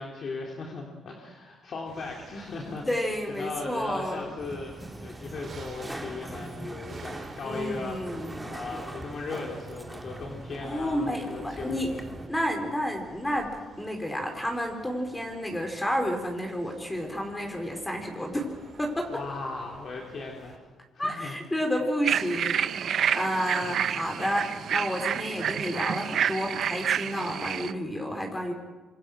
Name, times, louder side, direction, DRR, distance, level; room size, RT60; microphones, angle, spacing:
voice 1, 0.0-2.9 3.3-12.1 19.1-20.6 20.9-21.4 23.7-24.2, left 3 dB, 55° left, 0 dB, 3.6 m, -38 dB
sound 1, 1.9-20.6, right 4 dB, 45° right, 4.9 m, -50 dB
voice 2, 2.9-4.2 7.4-8.4 10.6-11.9 12.3-18.5 18.8-19.2 21.0-28.5, equal, 10° left, 3 dB, 4.3 m, -30 dB
sound 2, 4.4-12.3, right 1 dB, 10° right, 2.6 m, -41 dB
sound 3, 22.0-27.7, right 9 dB, 65° right, 0.9 m, -29 dB
26.5 x 23.5 x 6.3 m, 1.3 s
cardioid pair, 90°, 0 cm